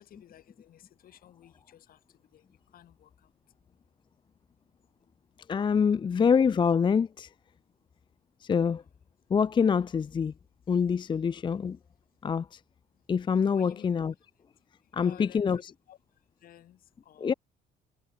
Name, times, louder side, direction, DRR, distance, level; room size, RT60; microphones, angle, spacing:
voice 1, 0.0-2.0 2.3-2.4 2.7-3.1 13.5-13.8 15.0-15.5 15.9-16.0 16.4-17.4, left 11 dB, 60° left, 2.6 m, -53 dB
voice 2, 5.5-7.3 8.4-8.8 9.3-10.3 10.7-11.8 12.2-12.6 13.1-14.1 14.9-15.7 17.2-17.3, left 6 dB, 30° left, 0.6 m, -25 dB
cardioid pair, 110°, 17 cm